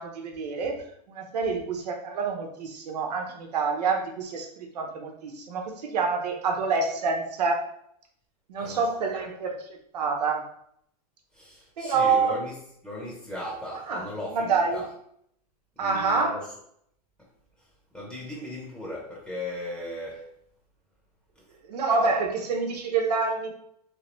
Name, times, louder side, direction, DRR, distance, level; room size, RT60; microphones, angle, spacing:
voice 1, 0.0-7.7 8.5-9.5 9.9-10.5 11.8-12.4 13.9-14.0 14.3-14.8 15.8-16.4 21.7-23.5, right 4 dB, 85° right, 2 dB, 0.9 m, -27 dB
voice 2, 8.6-9.3 11.3-12.6 12.8-14.9 15.8-16.5 17.6-20.3 21.3-21.4, left 1 dB, 5° left, -4 dB, 1.0 m, -37 dB
3.3 x 3.2 x 3.1 m, 0.70 s
hypercardioid pair, 125°, 20 cm